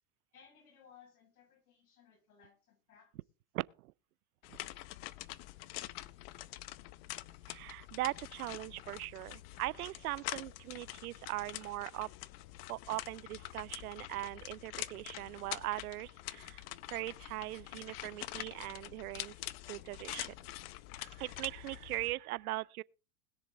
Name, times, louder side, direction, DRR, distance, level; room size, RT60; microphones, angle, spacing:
voice 1, 0.3-3.1, left 7 dB, 90° left, 6.3 m, -61 dB
voice 2, 3.5-3.9 4.5-4.6 7.5-12.1 12.7-16.6 16.9-19.3 19.7-20.3 21.0-22.8, right 18 dB, 85° right, 0.7 m, -40 dB
sound 1, 4.4-22.1, left 17 dB, 45° left, 0.7 m, -46 dB
21.0 x 7.2 x 3.8 m
supercardioid pair, 150°, 43 cm